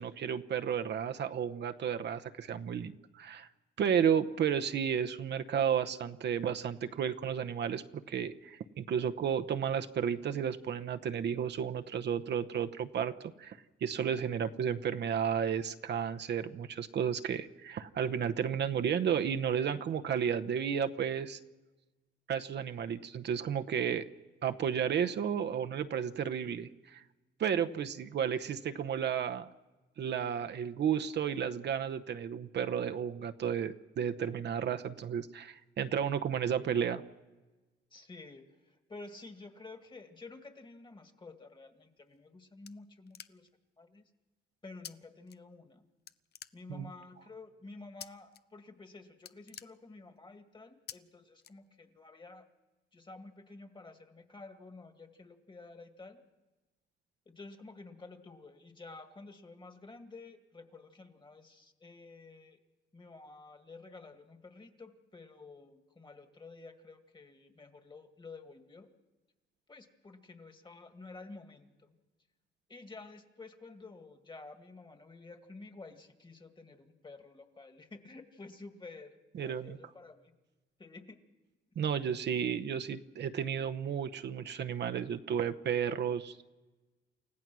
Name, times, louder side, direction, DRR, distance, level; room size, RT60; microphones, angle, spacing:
voice 1, 0.0-3.5 3.8-13.1 13.4-21.4 22.3-24.1 24.4-27.0 27.4-29.5 30.0-37.0 46.7-46.9 79.4-79.8 81.8-86.5, right 8 dB, 60° right, 9 dB, 0.9 m, -32 dB
voice 2, 27.7-28.1 37.9-43.5 43.8-44.1 44.6-45.9 46.5-52.5 52.9-56.2 57.3-62.6 62.9-68.9 69.7-72.0 72.7-80.4 80.8-81.2, left 3 dB, 25° left, 7 dB, 2.2 m, -51 dB
sound 1, 42.0-43.7 44.8-44.9 45.3-45.8 46.1-47.0 48.0-48.4 48.7-48.9 49.1-50.3 50.9-51.0 51.4-52.1, left 9 dB, 55° left, 0.7 m, -49 dB
29.0 x 16.0 x 6.2 m, 1.2 s
cardioid pair, 90°, 20 cm